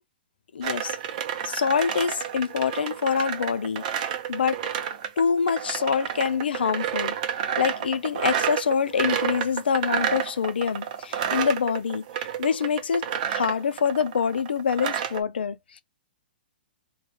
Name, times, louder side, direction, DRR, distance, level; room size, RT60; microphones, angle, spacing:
voice 1, 0.5-1.0 1.4-4.6 5.2-7.2 7.6-15.8, left 6 dB, 85° left, 0.5 m, -26 dB
sound 1, 0.6-15.2, right 9 dB, 45° right, 0.6 m, -30 dB
2.3 x 2.3 x 2.8 m
hypercardioid pair, 145°, 5 cm